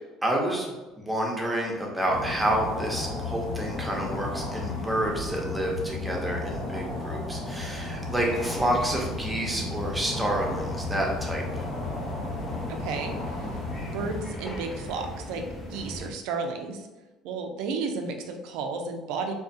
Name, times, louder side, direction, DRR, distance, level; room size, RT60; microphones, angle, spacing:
voice 1, 0.2-11.7, right 1 dB, 10° right, -1 dB, 0.7 m, -29 dB
sound 1, 2.0-15.0, left 1 dB, 60° left, 0.7 m, -39 dB
sound 2, 2.1-14.2, left 3 dB, 80° left, 1.0 m, -35 dB
sound 3, 8.2-16.1, equal, 20° left, 0.9 m, -39 dB
voice 2, 12.7-13.6 13.9-15.4 15.7-16.9 17.2-19.3, right 4 dB, 75° right, 4 dB, 0.4 m, -33 dB
2.4 x 2.3 x 2.6 m, 1.1 s
supercardioid pair, 80°, 0 cm